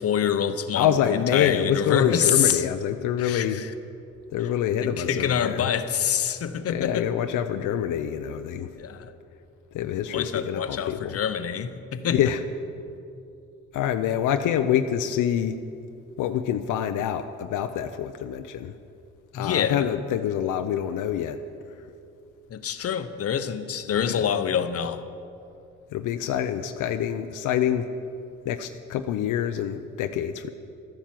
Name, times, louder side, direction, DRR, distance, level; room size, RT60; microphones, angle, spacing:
voice 1, 0.0-2.6 3.2-3.7 4.8-7.1 8.8-9.1 10.1-12.2 19.3-19.9 22.5-25.0, left 8 dB, 50° left, 9 dB, 0.9 m, -26 dB
voice 2, 0.7-3.6 4.3-5.7 6.7-8.7 9.7-11.2 12.1-12.4 13.7-15.6 16.2-18.7 19.3-21.4 24.0-24.2 25.9-27.9 28.5-30.5, left 9 dB, 85° left, 8 dB, 0.6 m, -26 dB
13.0 x 10.0 x 7.5 m, 2.6 s
cardioid pair, 90°, 30 cm